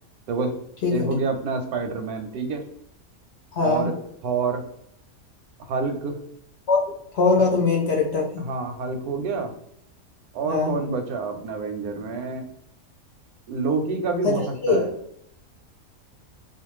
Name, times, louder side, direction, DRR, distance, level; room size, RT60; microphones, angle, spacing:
voice 1, 0.3-0.6 0.9-2.6 3.6-3.9 4.2-4.6 5.7-6.2 8.4-9.5 10.3-12.5 13.5-14.9, right 4 dB, 90° right, 6 dB, 1.1 m, -27 dB
voice 2, 3.5-3.9 6.7-6.8 7.1-8.2 10.5-10.7 14.2-14.3 14.6-14.8, left 4 dB, 60° left, -1 dB, 0.7 m, -21 dB
2.5 x 2.3 x 3.0 m, 0.73 s
omnidirectional pair, 1.5 m